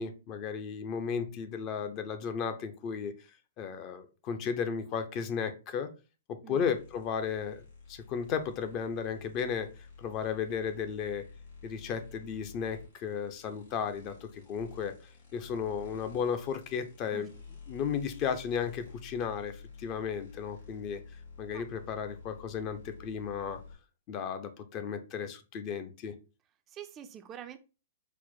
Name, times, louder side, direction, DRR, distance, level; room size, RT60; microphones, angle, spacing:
voice 1, 0.0-3.1 3.6-5.9 6.3-11.2 11.6-14.9 15.3-17.3 17.7-21.0 21.4-23.6 24.1-26.2, left 7 dB, 35° left, 9 dB, 0.5 m, -34 dB
voice 2, 6.4-6.8 17.1-17.3 21.5-21.7 26.7-27.6, right 10 dB, 25° right, 8 dB, 0.3 m, -46 dB
sound 1, 6.5-23.7, left 5 dB, 55° left, 2.1 m, -50 dB
4.4 x 2.0 x 4.0 m, 0.32 s
figure-of-eight pair, 115°, 0 cm